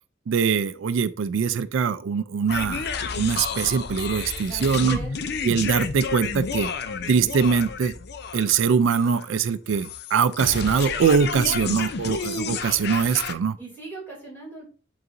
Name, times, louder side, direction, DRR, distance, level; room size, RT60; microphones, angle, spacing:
voice 1, 0.3-2.9 3.2-5.0 5.4-6.7 7.1-7.9 8.3-13.6, right 6 dB, 75° right, 0.4 m, -22 dB
sound 1, 2.5-13.3, left 5 dB, 55° left, 0.5 m, -31 dB
voice 2, 4.5-5.1 11.5-11.8 13.6-14.7, right 3 dB, 10° left, 2.8 m, -40 dB
10.5 x 3.9 x 2.6 m
head